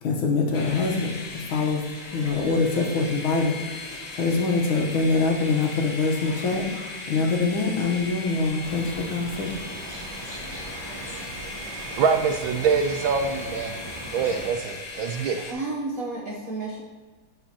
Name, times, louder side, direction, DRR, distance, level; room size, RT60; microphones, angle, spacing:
voice 1, 0.0-1.2 1.5-1.8 2.1-6.7 7.1-9.6, left 4 dB, 70° left, 1 dB, 1.8 m, -24 dB
sound 1, 0.5-15.5, left 2 dB, 50° left, 0.8 m, -38 dB
sound 2, 8.6-14.5, right 1 dB, 25° right, 2.4 m, -39 dB
voice 2, 12.0-13.7 14.1-15.4, right 6 dB, 75° right, 5 dB, 1.2 m, -24 dB
voice 3, 15.4-16.8, right 3 dB, 55° right, -2 dB, 1.0 m, -31 dB
10.5 x 5.0 x 2.8 m, 1.4 s
omnidirectional pair, 2.4 m